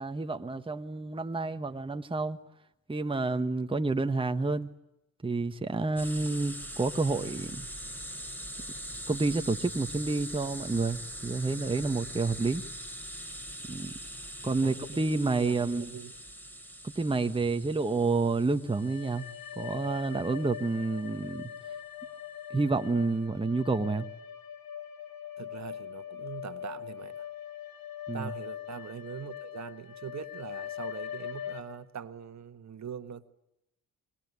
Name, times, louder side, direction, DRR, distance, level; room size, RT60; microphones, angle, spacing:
voice 1, 0.0-2.4 2.9-4.7 5.2-7.7 9.1-12.6 13.7-13.9 14.4-15.9 16.8-19.2 19.6-21.4 22.5-24.1 28.1-28.3, right 3 dB, 15° right, 7 dB, 1.3 m, -29 dB
sound 1, 6.0-20.5, equal, 5° left, 4.0 m, -42 dB
voice 2, 14.4-15.0 15.4-16.1 25.4-27.1 28.1-33.3, right 8 dB, 50° right, 10 dB, 1.6 m, -42 dB
sound 2, 18.6-31.6, left 10 dB, 65° left, 4.5 m, -42 dB
26.0 x 21.5 x 9.7 m, 0.87 s
supercardioid pair, 70°, 36 cm